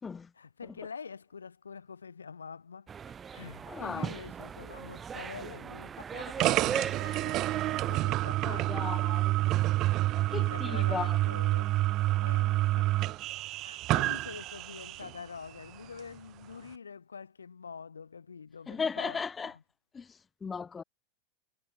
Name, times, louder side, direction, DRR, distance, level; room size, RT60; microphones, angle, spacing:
voice 1, 0.3-2.9 3.3-7.5 7.9-9.2 10.3-11.8 12.2-13.2 13.6-19.2 19.5-19.6, left 6 dB, 90° left, 4.9 m, -46 dB
sound 1, 2.9-8.0, right 7 dB, 25° right, 1.6 m, -39 dB
voice 2, 3.7-4.1 8.4-9.4 10.1-11.2 18.7-19.5 19.9-20.1 20.4-20.8, left 5 dB, 20° left, 4.4 m, -36 dB
sound 2, 6.4-15.1, right 16 dB, 45° right, 1.0 m, -28 dB
hypercardioid pair, 90°, 0 cm